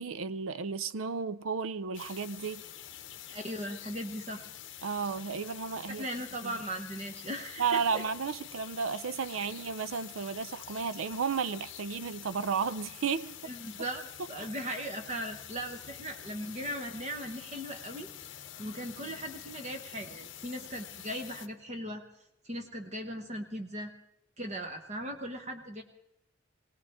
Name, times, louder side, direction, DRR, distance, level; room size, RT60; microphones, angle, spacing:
voice 1, 0.0-2.6 4.8-6.1 6.4-6.6 7.6-13.4 14.4-14.5, right 6 dB, 80° right, 0.5 m, -33 dB
sound 1, 1.9-21.5, left 10 dB, 60° left, 0.8 m, -47 dB
voice 2, 3.3-4.4 6.0-8.0 13.4-18.1 18.6-22.0 22.4-23.9 24.4-25.8, right 1 dB, 35° right, 1.0 m, -38 dB
22.0 x 17.5 x 3.6 m
head